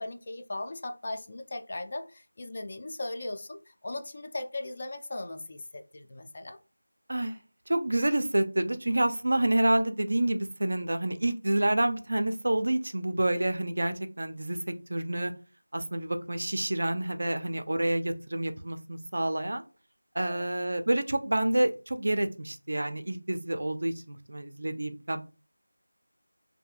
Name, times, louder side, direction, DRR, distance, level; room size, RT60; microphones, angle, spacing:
voice 1, 0.0-6.6 20.2-20.5, left 2 dB, 35° left, 0.4 m, -38 dB
voice 2, 7.7-15.3 15.7-19.6 20.1-25.2, right 1 dB, 55° right, 0.4 m, -28 dB
2.6 x 2.6 x 2.3 m
figure-of-eight pair, 170°, 0 cm